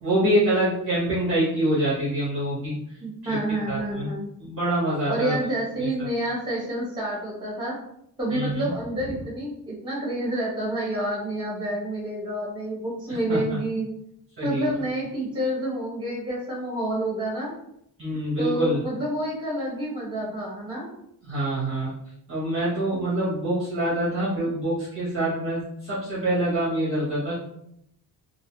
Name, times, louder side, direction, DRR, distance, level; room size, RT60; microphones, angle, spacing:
voice 1, 0.0-2.7 3.2-3.4 3.7-4.1 4.4-5.4 5.8-6.1 8.3-8.7 13.1-13.6 14.4-14.7 18.0-18.8 21.2-21.9 22.3-27.4, right 1 dB, 35° right, -8 dB, 0.8 m, -25 dB
voice 2, 3.0-4.3 5.1-7.8 8.2-13.9 14.4-17.5 18.4-20.9, right 1 dB, 10° right, -5 dB, 1.1 m, -28 dB
2.4 x 2.2 x 3.1 m, 0.75 s
wide cardioid pair, 165°, 40 cm